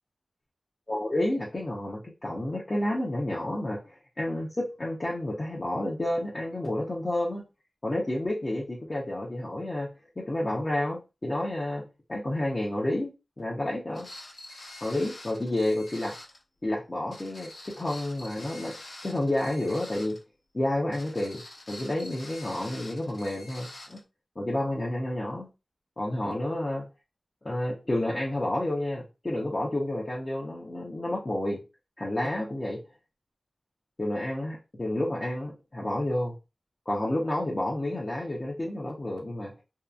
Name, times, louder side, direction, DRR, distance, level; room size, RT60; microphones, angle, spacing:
voice 1, 0.9-7.4 7.8-9.9 10.2-14.1 14.8-16.1 16.6-18.8 19.0-20.2 20.5-21.4 21.7-24.0 24.4-25.5 26.0-26.9 27.4-31.6 32.0-32.8 34.0-36.3 36.9-39.6, left 1 dB, 35° left, -4 dB, 0.7 m, -30 dB
sound 1, 13.9-16.4 17.1-20.2 20.9-24.0, left 1 dB, 70° left, 1.0 m, -46 dB
2.8 x 2.3 x 2.3 m, 0.28 s
wide cardioid pair, 65°, 0 cm